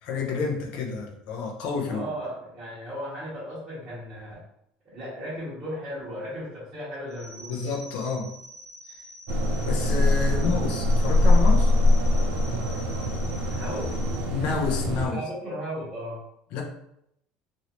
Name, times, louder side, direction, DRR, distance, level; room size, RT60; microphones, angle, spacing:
voice 1, 0.0-2.1 7.5-8.3 8.9-9.0 9.6-11.7 14.3-15.2 16.5-16.6, left 5 dB, 55° left, 0 dB, 0.6 m, -29 dB
voice 2, 1.9-4.4 4.8-7.6 10.3-10.5 13.3-13.9 15.0-16.2, equal, 15° right, -14 dB, 1.4 m, -36 dB
sound 1, 7.1-14.2, equal, 10° left, 1.2 m, -46 dB
sound 2, 9.3-15.1, left 2 dB, 75° right, 0.5 m, -22 dB
3.0 x 2.7 x 2.9 m, 0.77 s
cardioid pair, 175°, 3 cm